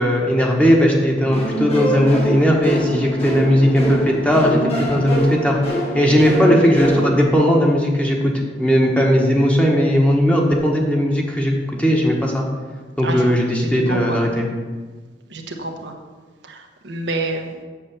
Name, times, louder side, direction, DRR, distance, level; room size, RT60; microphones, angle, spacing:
voice 1, 0.0-5.6 5.9-8.3 8.6-12.4 13.0-14.5, equal, 5° left, -1 dB, 1.4 m, -17 dB
sound 1, 1.3-7.3, right 1 dB, 35° left, 2.3 m, -25 dB
voice 2, 13.6-14.3 15.3-15.9 16.4-17.6, right 2 dB, 85° right, 2 dB, 1.2 m, -28 dB
7.5 x 6.9 x 6.9 m, 1.4 s
head